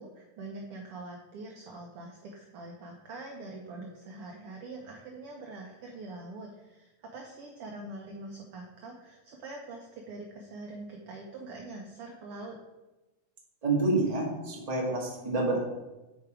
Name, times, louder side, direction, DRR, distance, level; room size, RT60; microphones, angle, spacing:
voice 1, 0.0-12.6, right 2 dB, 80° right, 0 dB, 1.2 m, -44 dB
voice 2, 13.6-15.6, right 2 dB, 20° right, -3 dB, 1.0 m, -28 dB
8.4 x 4.7 x 4.8 m, 1.0 s
omnidirectional pair, 3.7 m